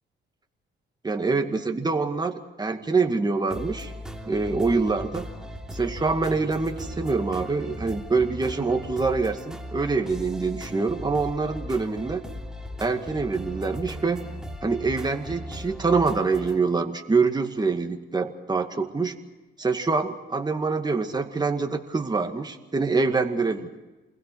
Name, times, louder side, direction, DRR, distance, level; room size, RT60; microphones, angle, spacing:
voice 1, 1.0-3.9 4.3-5.3 5.7-12.2 12.8-14.3 14.6-19.2 19.6-23.7, right 4 dB, 20° right, 5 dB, 2.2 m, -25 dB
sound 1, 3.5-16.6, equal, 5° right, 3.2 m, -38 dB
28.5 x 21.5 x 4.8 m, 1.1 s
cardioid pair, 90°, 20 cm